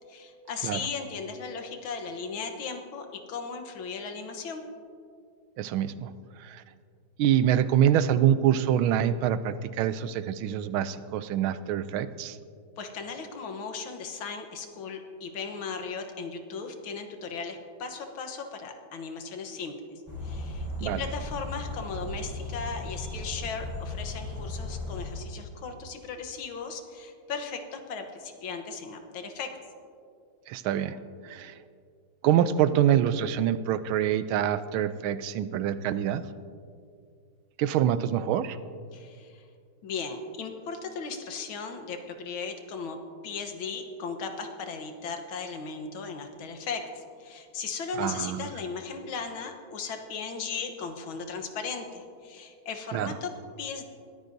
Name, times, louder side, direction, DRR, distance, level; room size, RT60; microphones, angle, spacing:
voice 1, 0.1-4.6 12.8-19.8 20.2-29.5 38.9-39.5 39.8-43.0 43.2-53.3 53.6-53.8, left 5 dB, 80° left, 5 dB, 1.9 m, -37 dB
voice 2, 5.6-6.1 6.4-6.6 7.2-12.4 20.8-21.0 30.5-31.0 31.2-31.6 32.2-36.2 37.6-38.6 48.0-48.5 52.9-53.1, right 10 dB, 90° right, 13 dB, 1.4 m, -25 dB
sound 1, 20.1-25.1, left 2 dB, 10° right, 3.6 m, -36 dB
21.0 x 14.0 x 2.7 m, 2.3 s
omnidirectional pair, 2.2 m